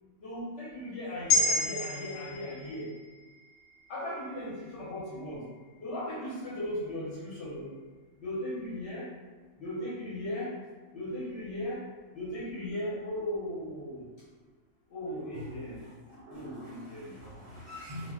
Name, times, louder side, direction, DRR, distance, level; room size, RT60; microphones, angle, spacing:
voice 1, 0.2-2.9 3.9-5.4 5.8-7.7 8.2-9.1 9.6-10.5 10.9-11.8 12.1-14.0 14.9-15.8 16.3-17.1, left 1 dB, 60° left, -8 dB, 0.9 m, -37 dB
sound 1, 1.3-5.8 6.2-6.3, left 2 dB, 80° left, 1.0 m, -33 dB
voice 2, 15.3-18.1, left 1 dB, 65° right, -7 dB, 0.6 m, -44 dB
2.4 x 2.1 x 3.5 m, 1.4 s
omnidirectional pair, 1.4 m